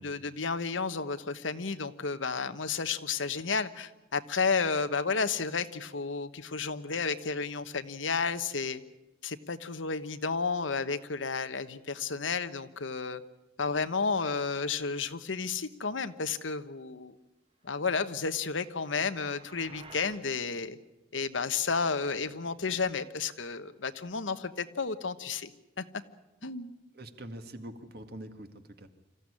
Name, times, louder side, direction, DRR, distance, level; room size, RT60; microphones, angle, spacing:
voice 1, 0.0-8.8 9.2-13.2 13.6-17.2 17.6-20.8 21.1-25.5 25.8-25.9 26.4-26.7, left 5 dB, 85° left, 11 dB, 1.2 m, -32 dB
sound 1, 18.2-20.3, right 4 dB, 30° right, 1.4 m, -53 dB
voice 2, 26.9-28.9, right 1 dB, 55° right, 7 dB, 2.0 m, -44 dB
26.5 x 15.0 x 9.9 m, 1.0 s
head